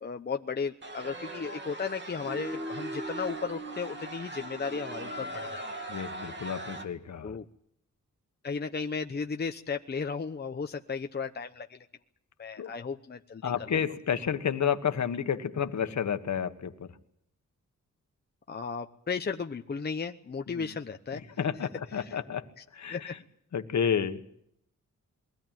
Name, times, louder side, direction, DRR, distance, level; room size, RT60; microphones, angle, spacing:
voice 1, 0.0-5.6 7.2-7.5 8.4-11.9 12.4-13.7 18.5-21.2 22.1-22.2 22.9-23.1, left 5 dB, 30° left, 5 dB, 0.9 m, -35 dB
sound 1, 0.8-6.9, right 1 dB, 35° right, 2.7 m, -39 dB
voice 2, 5.9-7.3 12.6-12.7 13.4-16.9 20.5-20.7 21.1-22.5 22.7-23.2 23.5-24.2, left 7 dB, 60° left, 8 dB, 1.6 m, -31 dB
22.0 x 17.0 x 9.2 m, 0.71 s
wide cardioid pair, 145°, 31 cm